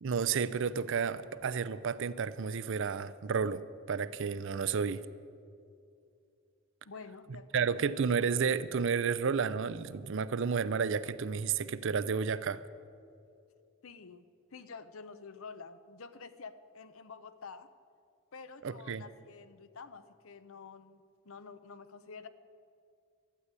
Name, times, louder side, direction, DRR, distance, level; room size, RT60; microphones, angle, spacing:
voice 1, 0.0-3.6 3.9-5.0 7.5-12.6 18.6-19.0, right 6 dB, 60° right, 15 dB, 0.5 m, -31 dB
voice 2, 6.8-7.9 13.8-14.3 14.5-17.7 18.3-22.3, left 5 dB, 70° left, 12 dB, 0.7 m, -49 dB
12.5 x 8.2 x 9.8 m, 2.5 s
head